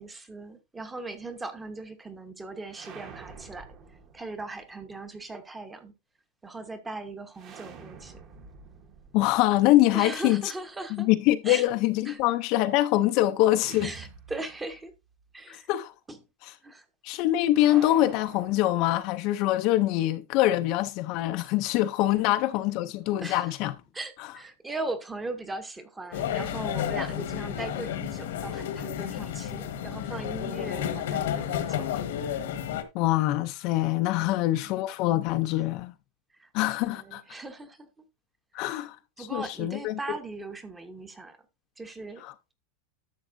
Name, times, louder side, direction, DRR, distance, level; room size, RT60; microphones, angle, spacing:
voice 1, 0.0-3.7 4.1-6.0 6.4-8.2 9.9-11.1 11.4-11.7 12.0-12.2 13.8-14.9 15.3-15.7 16.1-16.2 16.6-17.2 23.2-23.5 23.9-32.1 34.2-34.7 36.4-36.5 36.9-37.9 38.5-38.8 39.2-41.4 41.8-42.3, right 2 dB, 10° right, 0.9 m, -39 dB
sound 1, 2.7-4.7 7.3-10.3 13.5-14.9 15.2-15.3 17.5-19.3, right 6 dB, 30° right, 1.1 m, -47 dB
voice 2, 9.1-10.5 10.9-13.9 15.5-15.9 17.0-23.7 32.9-35.9 36.5-37.2 38.5-39.9 42.2-42.3, left 15 dB, 40° left, 0.5 m, -24 dB
sound 2, 26.1-32.8, left 10 dB, 75° left, 1.3 m, -31 dB
11.5 x 7.0 x 2.6 m
supercardioid pair, 170°, 0 cm